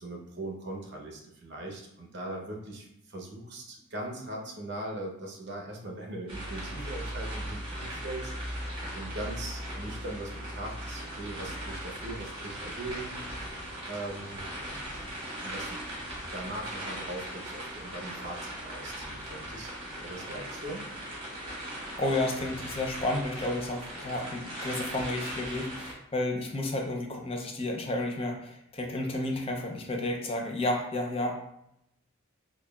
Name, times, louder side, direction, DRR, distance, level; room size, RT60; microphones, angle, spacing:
voice 1, 0.0-8.7 8.9-13.6 13.9-14.5 15.4-15.8 16.3-19.7 20.0-20.8, right 1 dB, 55° right, 0 dB, 0.7 m, -40 dB
sound 1, 6.3-25.9, right 1 dB, 25° right, 1.2 m, -39 dB
voice 2, 22.0-31.3, left 1 dB, 25° left, 2 dB, 0.4 m, -31 dB
5.3 x 2.3 x 2.3 m, 0.78 s
head